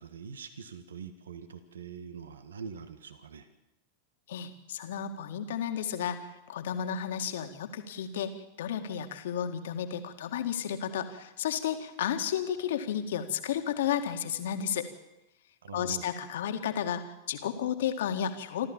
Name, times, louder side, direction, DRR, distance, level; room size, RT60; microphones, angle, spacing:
voice 1, 0.0-3.5 15.6-16.1, right 6 dB, 65° right, 10 dB, 1.6 m, -43 dB
voice 2, 4.3-14.9 15.7-18.7, left 9 dB, 60° left, 7 dB, 2.0 m, -32 dB
27.5 x 13.5 x 7.3 m, 0.98 s
figure-of-eight pair, 90°, 0 cm